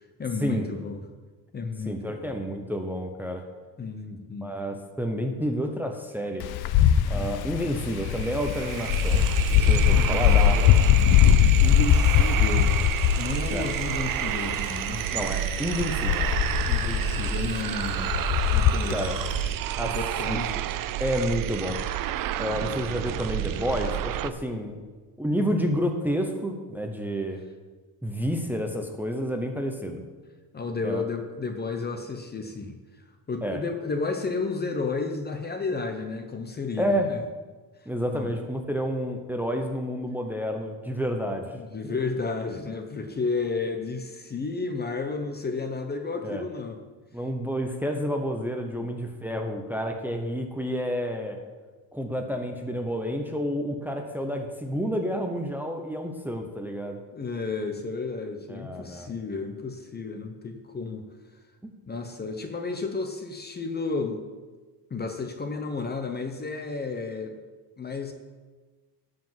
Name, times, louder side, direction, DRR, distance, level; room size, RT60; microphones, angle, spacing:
voice 1, 0.2-1.0 1.5-2.4 3.8-4.5 7.1-7.3 10.0-10.7 11.6-12.7 13.1-15.0 16.7-18.1 18.5-19.0 19.8-20.5 22.7-22.8 30.5-32.8 33.3-37.2 38.1-38.3 41.5-46.8 48.8-48.9 57.1-61.0 61.9-64.2 64.9-67.4 67.8-68.1, left 4 dB, 25° left, 6 dB, 0.8 m, -32 dB
voice 2, 1.9-3.4 4.4-6.4 7.1-9.3 9.5-10.9 13.5-13.7 15.1-16.3 18.9-19.2 19.8-19.9 20.3-20.6 21.0-21.8 22.4-24.8 25.2-27.4 28.0-30.0 30.8-31.0 33.4-33.6 36.8-37.1 37.9-41.5 46.2-46.5 47.1-51.4 51.9-57.0 58.5-59.1, equal, 5° right, 3 dB, 0.8 m, -29 dB
Wind, 6.4-19.5, left 10 dB, 65° left, 0.6 m, -22 dB
sound 1, 7.3-7.4 7.6-24.3, right 12 dB, 55° right, 0.5 m, -30 dB
12.0 x 5.1 x 7.4 m, 1.3 s
cardioid pair, 145°, 40 cm